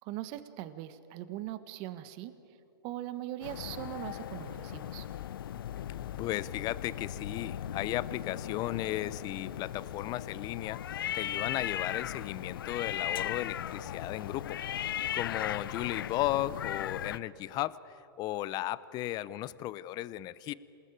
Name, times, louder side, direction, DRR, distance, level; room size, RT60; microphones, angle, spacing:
voice 1, 0.0-2.4 2.8-5.0, right 13 dB, 40° right, 12 dB, 1.4 m, -40 dB
sound 1, 3.4-17.2, left 10 dB, 70° left, 0.7 m, -37 dB
voice 2, 6.2-14.6 15.1-20.5, left 15 dB, 35° left, 18 dB, 0.8 m, -35 dB
27.0 x 19.5 x 8.9 m, 2.8 s
hypercardioid pair, 120°, 12 cm